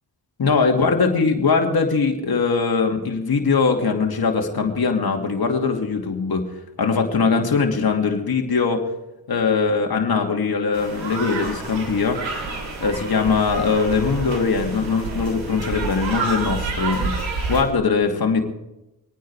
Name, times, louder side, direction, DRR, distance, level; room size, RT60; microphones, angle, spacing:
voice 1, 0.4-6.4 6.8-8.9 9.3-12.2 12.8-17.1 17.5-18.4, left 5 dB, 55° left, 3 dB, 2.5 m, -21 dB
sound 1, 10.7-17.6, right 4 dB, 90° right, 3.1 m, -29 dB
23.5 x 9.3 x 4.8 m, 0.93 s
supercardioid pair, 45°, 45 cm